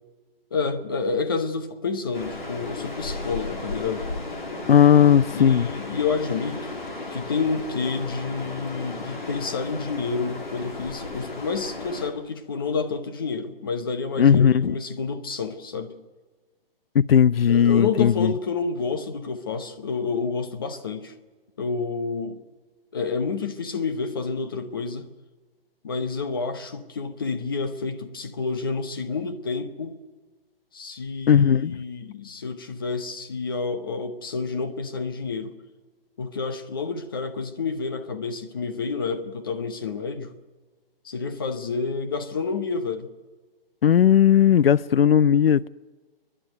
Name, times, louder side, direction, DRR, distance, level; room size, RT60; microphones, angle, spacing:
voice 1, 0.5-4.1 5.3-6.7 7.1-15.9 17.5-21.1 21.6-22.4 22.9-25.1 25.8-30.0 30.7-35.6 36.2-40.3 41.0-43.1, left 4 dB, 25° left, 0.9 m, -29 dB
sound 1, 2.1-12.1, left 2 dB, 55° left, 3.7 m, -35 dB
voice 2, 4.7-5.7 14.2-14.8 16.9-18.3 31.3-31.8 43.8-45.7, left 8 dB, 80° left, 0.5 m, -17 dB
27.0 x 11.5 x 9.4 m
hypercardioid pair, 175°, 29 cm